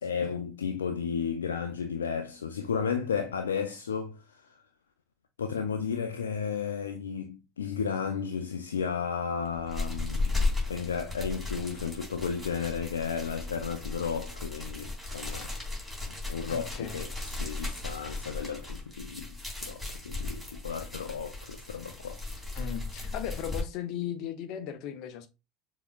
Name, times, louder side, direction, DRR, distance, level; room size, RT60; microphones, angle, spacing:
voice 1, 0.0-4.6 5.4-10.4 10.7-15.5 16.1-22.6, left 6 dB, 75° left, 0.4 m, -33 dB
sound 1, 9.4-23.6, left 3 dB, 5° right, 2.7 m, -35 dB
voice 2, 16.5-17.0 22.5-25.3, left 10 dB, 50° left, 0.8 m, -37 dB
6.8 x 3.0 x 2.3 m
figure-of-eight pair, 70°, 0 cm